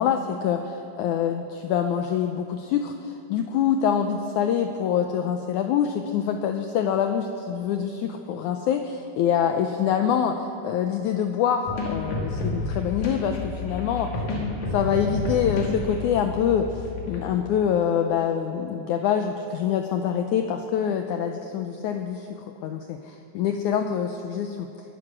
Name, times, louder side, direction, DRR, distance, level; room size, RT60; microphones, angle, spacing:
voice 1, 0.0-14.1 14.7-24.7, left 8 dB, 85° left, 5 dB, 1.7 m, -25 dB
sound 1, 11.7-17.3, left 2 dB, 55° left, 3.6 m, -30 dB
21.0 x 11.0 x 6.1 m, 2.7 s
omnidirectional pair, 4.3 m